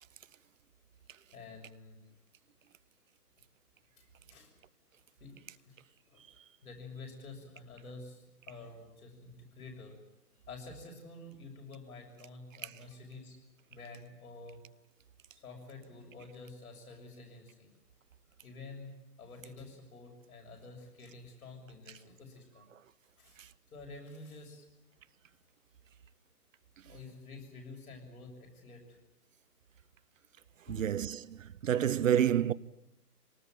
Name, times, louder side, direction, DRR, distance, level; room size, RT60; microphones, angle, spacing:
voice 1, 1.3-2.0 4.0-4.5 5.2-5.7 6.1-10.0 10.5-13.4 13.6-14.6 15.3-17.7 18.4-22.7 23.2-23.4 23.7-24.7 26.8-29.0 30.7-30.9, left 3 dB, 65° left, 6.9 m, -49 dB
voice 2, 30.7-32.5, right 9 dB, 55° right, 0.8 m, -29 dB
24.5 x 19.0 x 9.2 m
hypercardioid pair, 145°, 48 cm